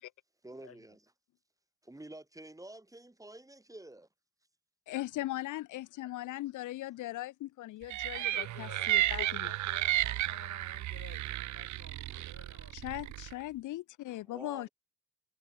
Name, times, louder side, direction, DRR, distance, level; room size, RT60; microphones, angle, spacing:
voice 1, 0.4-1.0 1.8-4.1 14.1-14.7, right 1 dB, 10° right, 4.1 m, -49 dB
voice 2, 4.9-9.5 12.7-14.7, left 16 dB, 80° left, 1.0 m, -39 dB
sound 1, 7.9-13.3, right 15 dB, 70° right, 0.7 m, -33 dB
voice 3, 8.1-13.1, left 7 dB, 50° left, 6.2 m, -54 dB
cardioid pair, 90°, 30 cm